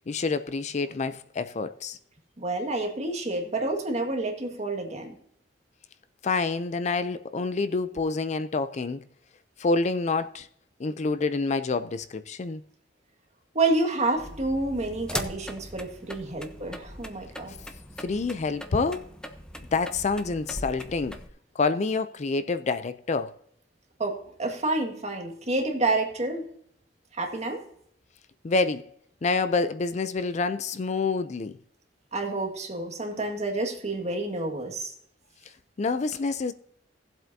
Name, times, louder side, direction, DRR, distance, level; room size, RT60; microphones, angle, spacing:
voice 1, 0.0-2.0 6.2-9.0 9.6-10.5 10.8-12.6 18.0-19.0 19.7-21.2 21.6-23.3 28.4-28.8 29.2-31.6 35.8-36.5, left 4 dB, 40° left, 0.4 m, -27 dB
voice 2, 2.4-5.1 13.5-17.5 24.0-26.5 27.1-27.6 32.1-34.9, right 2 dB, 40° right, 1.8 m, -29 dB
sound 1, 14.2-21.3, equal, 5° left, 0.8 m, -40 dB
17.5 x 7.8 x 2.7 m
head